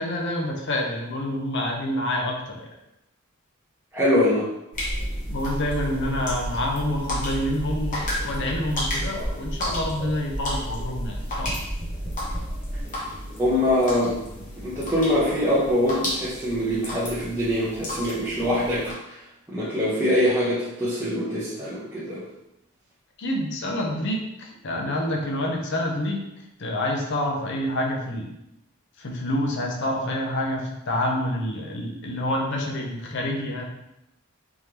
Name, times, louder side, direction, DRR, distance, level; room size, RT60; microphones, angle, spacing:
voice 1, 0.0-2.7 5.3-11.6 23.2-26.2 26.6-28.3 29.0-33.6, left 1 dB, 55° left, 0 dB, 0.6 m, -27 dB
voice 2, 3.9-4.5 13.4-14.2 14.6-19.2 19.5-22.2, left 1 dB, 10° right, -10 dB, 0.8 m, -23 dB
sound 1, 4.7-18.9, equal, 40° left, 1.1 m, -31 dB
3.6 x 3.2 x 2.9 m, 0.87 s
head